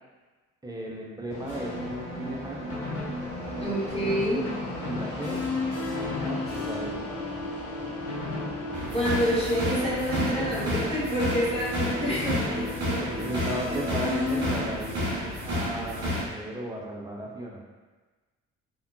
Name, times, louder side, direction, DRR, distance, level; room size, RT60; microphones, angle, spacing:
voice 1, 0.6-2.7 4.8-5.4 6.0-7.0 11.8-12.1 13.0-17.6, right 1 dB, 10° right, -2 dB, 0.6 m, -36 dB
Fixed-wing aircraft airplane, 1.3-10.4, left 2 dB, 45° left, 0.9 m, -39 dB
sound 1, 1.5-14.6, left 1 dB, 85° left, 0.9 m, -34 dB
voice 2, 3.6-4.4 8.9-13.0, equal, 15° left, -9 dB, 1.4 m, -28 dB
sound 2, 8.7-16.2, equal, 40° right, 1.3 m, -31 dB
3.5 x 2.2 x 2.7 m, 1.3 s
figure-of-eight pair, 45°, 39 cm